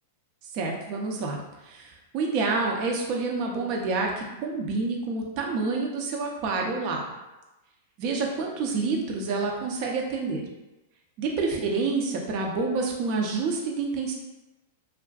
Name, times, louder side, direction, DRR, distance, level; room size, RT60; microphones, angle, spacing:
voice 1, 0.5-1.4 1.6-7.1 8.0-10.4 11.2-14.1, right 4 dB, 50° right, 0 dB, 0.5 m, -28 dB
2.5 x 2.4 x 2.3 m, 1.0 s
hypercardioid pair, 110°, 0 cm